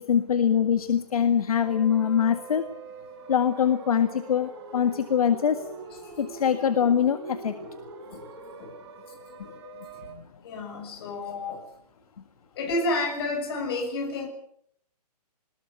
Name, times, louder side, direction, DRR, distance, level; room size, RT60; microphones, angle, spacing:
voice 1, 0.0-2.6 3.3-5.6 6.2-7.5, left 8 dB, 60° left, 9 dB, 1.9 m, -23 dB
sound 1, 1.6-10.1, right 3 dB, 40° right, 4.5 m, -43 dB
voice 2, 9.9-11.6 12.6-14.3, left 2 dB, 35° left, 3 dB, 7.2 m, -31 dB
22.5 x 21.0 x 8.4 m, 0.69 s
hypercardioid pair, 165°, 21 cm